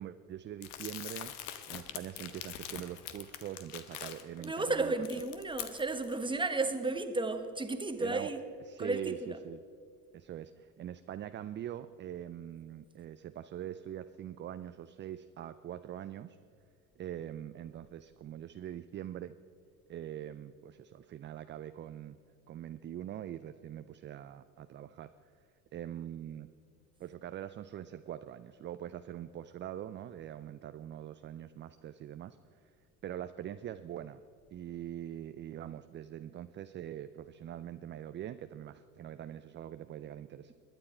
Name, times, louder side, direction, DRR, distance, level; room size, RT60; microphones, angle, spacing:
voice 1, 0.0-1.3 1.7-4.9 8.0-8.3 8.7-9.6 10.1-16.4 17.0-19.4 19.9-22.2 22.5-25.1 25.7-26.5 27.0-32.4 33.0-34.2 34.5-40.5, right 11 dB, 30° right, 0.4 m, -43 dB
Crumpling crinkling, 0.6-4.4 4.9-6.1, left 11 dB, 65° left, 1.1 m, -44 dB
voice 2, 4.4-8.4 8.8-9.4, right 2 dB, 10° right, 1.2 m, -33 dB
21.0 x 9.7 x 4.4 m
hypercardioid pair, 60°, 44 cm